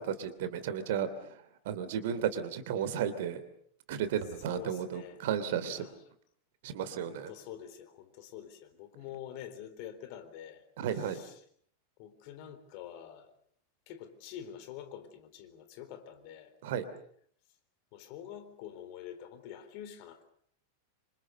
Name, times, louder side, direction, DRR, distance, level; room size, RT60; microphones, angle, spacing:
voice 1, 0.0-3.4 3.9-5.9 6.6-7.3 10.8-11.2 16.6-16.8, right 8 dB, 55° right, 12 dB, 2.9 m, -34 dB
voice 2, 4.5-5.2 5.7-5.9 7.1-10.6 11.1-11.3 12.0-13.3 13.9-16.5 17.9-20.3, left 10 dB, 45° left, 10 dB, 3.8 m, -46 dB
27.5 x 26.0 x 6.7 m, 0.64 s
figure-of-eight pair, 90°, 0 cm